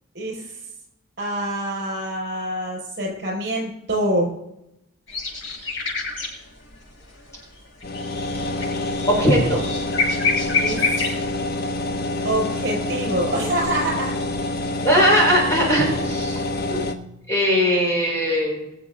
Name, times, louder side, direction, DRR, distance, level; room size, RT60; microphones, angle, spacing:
voice 1, 0.2-0.5 1.2-4.3 10.5-11.0 12.2-14.1 16.7-16.8, right 1 dB, 55° right, 0 dB, 5.4 m, -25 dB
sound 1, 5.1-6.8 7.1-11.4, left 4 dB, 70° left, 5.7 m, -27 dB
sound 2, 7.8-16.9, left 2 dB, 50° left, 1.1 m, -27 dB
voice 2, 9.1-9.6 14.8-16.4 17.3-18.6, equal, 15° left, -3 dB, 4.3 m, -19 dB
22.0 x 7.5 x 3.8 m, 0.82 s
head